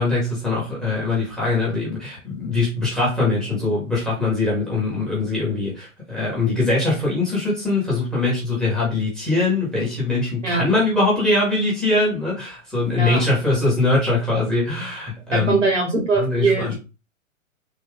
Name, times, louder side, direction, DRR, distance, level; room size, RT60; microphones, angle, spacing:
voice 1, 0.0-15.6 16.1-16.7, left 2 dB, ahead, -7 dB, 1.3 m, -22 dB
voice 2, 15.3-16.8, right 3 dB, 60° right, 0 dB, 2.2 m, -21 dB
3.7 x 2.8 x 3.4 m, 0.29 s
figure-of-eight pair, 120°, 40 cm